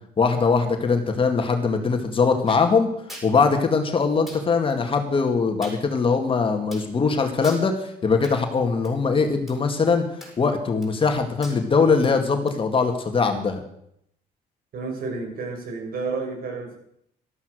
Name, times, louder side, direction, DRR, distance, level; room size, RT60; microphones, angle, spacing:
voice 1, 0.2-2.9 3.2-10.1 10.4-13.6, left 4 dB, 30° left, 5 dB, 2.3 m, -21 dB
sound 1, 2.5-2.6 3.1-3.3 4.3-4.4 5.6-5.8 6.7-6.9 7.4-7.6 8.2-8.4 8.8-8.9 9.5-9.6 10.2-10.5 10.8-11.1 11.4-11.6 12.0-12.1 12.5-12.6, equal, ahead, 7.2 m, -41 dB
voice 2, 14.7-16.8, right 4 dB, 60° right, 2 dB, 5.9 m, -31 dB
13.5 x 13.0 x 6.6 m, 0.71 s
cardioid pair, 110°, 17 cm